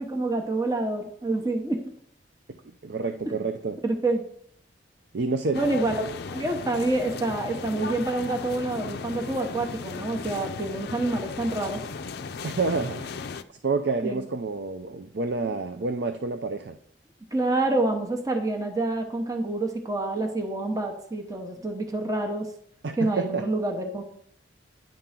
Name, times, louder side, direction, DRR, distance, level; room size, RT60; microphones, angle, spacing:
voice 1, 0.0-1.8 3.3-3.4 3.8-4.2 5.5-11.8 14.0-14.3 15.3-15.5 17.3-22.5 23.0-24.0, right 2 dB, 20° right, 3 dB, 0.9 m, -27 dB
voice 2, 2.8-3.8 5.1-5.6 12.4-13.1 13.6-16.8 22.8-23.5, right 4 dB, 60° right, 7 dB, 0.5 m, -28 dB
sound 1, 5.5-13.4, left 5 dB, 55° left, 0.4 m, -36 dB
10.5 x 3.8 x 5.8 m, 0.65 s
head